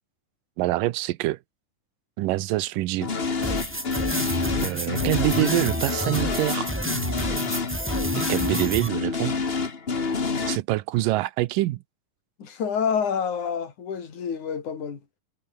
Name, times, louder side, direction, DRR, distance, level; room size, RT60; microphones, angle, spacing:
voice 1, 0.6-1.4 2.2-3.1 4.6-6.7 8.1-9.4 10.5-11.8, right 17 dB, 85° right, 2.5 m, -25 dB
sound 1, 3.0-10.6, left 4 dB, 35° left, 0.9 m, -28 dB
sound 2, 3.4-8.9, right 1 dB, 5° right, 1.0 m, -30 dB
voice 2, 12.4-15.0, left 7 dB, 65° left, 5.1 m, -28 dB
omnidirectional pair, 3.8 m